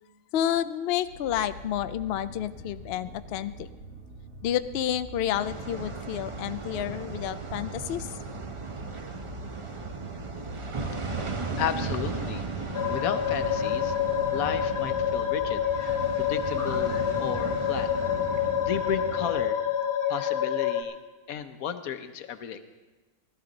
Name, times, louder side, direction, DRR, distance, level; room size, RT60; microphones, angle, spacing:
voice 1, 0.3-3.7 4.4-8.1, left 11 dB, 65° left, 12 dB, 0.6 m, -30 dB
sound 1, 1.0-17.3, right 1 dB, 70° right, 1.8 m, -45 dB
sound 2, 5.3-19.5, right 4 dB, 30° right, 0.6 m, -36 dB
voice 2, 10.9-14.0 14.3-15.6 16.2-17.9 18.6-19.6 20.1-21.0 21.3-22.6, left 8 dB, 90° left, 9 dB, 1.2 m, -34 dB
sound 3, 12.7-20.8, left 9 dB, 45° left, 1.1 m, -28 dB
17.0 x 13.0 x 3.9 m, 1.2 s
omnidirectional pair, 1.4 m